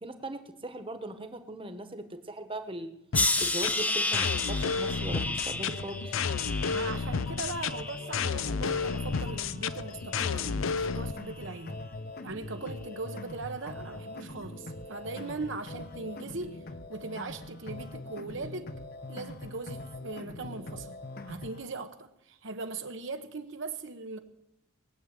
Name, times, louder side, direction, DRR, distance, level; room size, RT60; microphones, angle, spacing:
voice 1, 0.0-2.9 3.4-6.1, right 1 dB, 25° right, 1.3 m, -39 dB
sound 1, 3.1-11.1, left 5 dB, 70° left, 0.5 m, -31 dB
sound 2, 3.1-8.3 8.7-9.4 10.2-10.5, left 2 dB, 5° left, 0.7 m, -32 dB
sound 3, 5.7-21.7, left 2 dB, 45° left, 1.0 m, -42 dB
voice 2, 6.7-11.8 12.2-16.6 16.9-18.7 19.1-21.0 21.2-24.2, right 3 dB, 60° right, 1.0 m, -39 dB
20.5 x 7.4 x 8.9 m
head